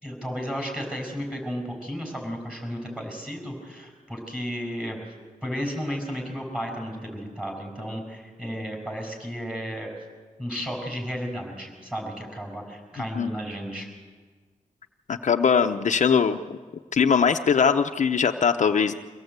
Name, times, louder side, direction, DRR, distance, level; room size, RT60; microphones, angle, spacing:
voice 1, 0.0-5.0 5.4-9.9 10.4-13.9, equal, 5° right, 2 dB, 5.8 m, -33 dB
voice 2, 15.1-16.6 16.9-18.9, left 6 dB, 60° left, 6 dB, 0.7 m, -21 dB
24.5 x 17.0 x 8.1 m, 1.5 s
wide cardioid pair, 150°, 14 cm